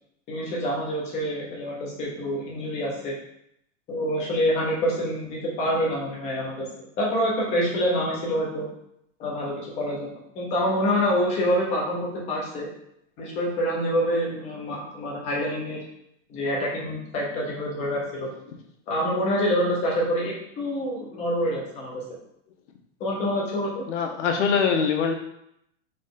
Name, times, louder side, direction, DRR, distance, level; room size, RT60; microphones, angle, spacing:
voice 1, 0.3-3.1 3.9-6.7 7.0-8.7 9.2-12.7 13.2-15.8 16.3-18.3 18.9-22.1 23.0-23.8, equal, 20° left, -3 dB, 0.8 m, -26 dB
voice 2, 23.9-25.1, left 6 dB, 75° left, 4 dB, 0.9 m, -23 dB
4.0 x 3.3 x 3.7 m, 0.75 s
supercardioid pair, 175°, 36 cm